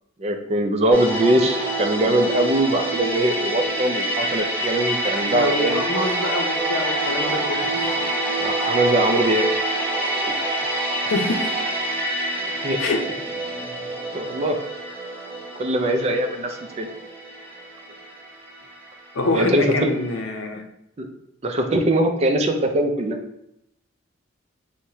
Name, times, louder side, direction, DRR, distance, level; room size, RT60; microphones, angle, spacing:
voice 1, 0.2-5.9 8.4-9.5 12.6-12.8 14.1-14.6 15.6-16.9 19.3-19.9 21.0-21.1 21.4-23.2, right 1 dB, 30° right, 4 dB, 0.4 m, -21 dB
sound 1, 0.9-19.7 20.0-20.2, right 1 dB, 10° left, 1.1 m, -26 dB
voice 2, 5.3-8.0 11.1-11.5 12.8-13.0 19.1-20.6, left 2 dB, 85° left, 4 dB, 0.6 m, -26 dB
6.2 x 2.1 x 2.8 m, 0.81 s
head